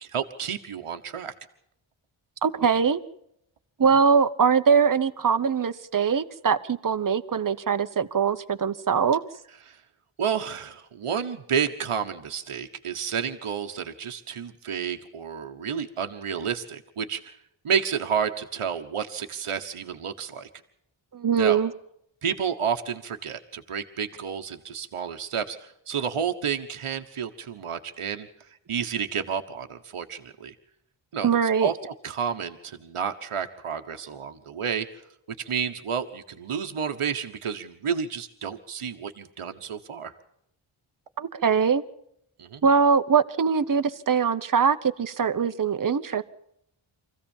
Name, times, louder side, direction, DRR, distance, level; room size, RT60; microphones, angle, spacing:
voice 1, 0.0-1.3 9.7-9.8 10.2-17.3 17.6-20.5 21.4-21.6 22.2-28.3 28.7-30.5 31.1-31.3 31.6-31.8 32.0-34.9 35.4-40.1 42.4-42.6, right 7 dB, 85° right, 6 dB, 1.3 m, -30 dB
voice 2, 2.4-3.0 3.8-9.2 21.1-21.7 31.2-31.7 41.2-41.8 42.6-46.2, right 6 dB, 40° right, 10 dB, 1.0 m, -22 dB
25.0 x 15.5 x 7.2 m, 0.76 s
wide cardioid pair, 70°, 50 cm